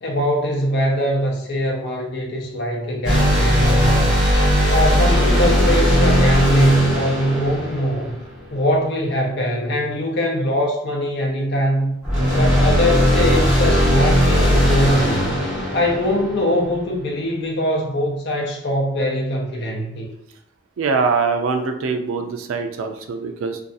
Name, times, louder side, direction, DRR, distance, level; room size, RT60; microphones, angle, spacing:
voice 1, 0.0-4.1 4.7-8.1 8.5-11.9 12.3-15.4 15.7-20.1, equal, 55° left, 0 dB, 0.6 m, -22 dB
sound 1, 3.0-8.5 12.0-16.8, equal, ahead, 1.2 m, -18 dB
voice 2, 20.8-23.6, right 4 dB, 80° right, 5 dB, 0.4 m, -23 dB
2.5 x 2.3 x 2.5 m, 0.76 s
head